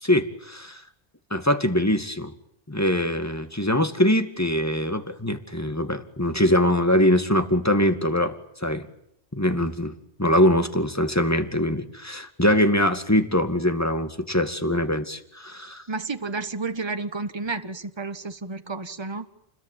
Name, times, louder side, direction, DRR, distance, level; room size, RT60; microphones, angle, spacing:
voice 1, 0.0-0.8 1.3-2.3 2.7-8.3 8.6-8.9 9.3-9.9 10.2-15.8, left 1 dB, 15° left, 8 dB, 2.1 m, -23 dB
voice 2, 15.9-19.2, right 3 dB, 25° right, 9 dB, 1.6 m, -31 dB
29.5 x 21.0 x 9.3 m, 0.74 s
omnidirectional pair, 1.2 m